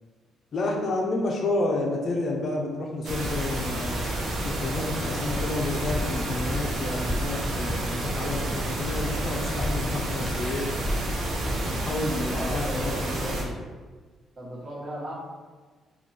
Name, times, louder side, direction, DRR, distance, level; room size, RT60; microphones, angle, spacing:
voice 1, 0.5-10.7 11.6-13.5, left 2 dB, 50° left, 1 dB, 0.7 m, -30 dB
sound 1, 3.0-13.4, right 1 dB, 65° right, 0.9 m, -30 dB
sound 2, 5.3-5.5 5.9-6.0 6.5-6.7 7.1-7.2 7.7-7.9 8.3-8.5 8.9-9.1 9.4-9.8 10.2-10.4 10.8-11.1 11.4-11.5, equal, 10° left, 0.4 m, -30 dB
voice 2, 12.3-13.5 14.4-15.1, right 1 dB, 45° right, -5 dB, 1.4 m, -36 dB
3.5 x 2.7 x 4.1 m, 1.4 s
cardioid pair, 90°, 0 cm